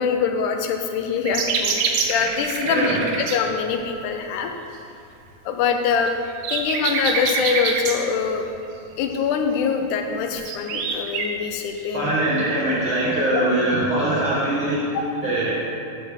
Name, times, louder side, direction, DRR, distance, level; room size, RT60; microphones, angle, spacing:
voice 1, 0.0-4.5 5.5-6.2 6.5-8.4 9.0-12.1 13.3-13.4 15.0-15.1, left 6 dB, 85° left, 5 dB, 2.1 m, -24 dB
sound 1, 1.3-3.4 6.1-8.0 10.3-11.3 12.6-12.7, right 5 dB, 85° right, 2.2 m, -25 dB
voice 2, 2.6-3.1 11.9-14.8 15.2-15.7, right 1 dB, 60° right, -7 dB, 1.4 m, -22 dB
9.1 x 6.6 x 3.6 m, 2.5 s
omnidirectional pair, 3.5 m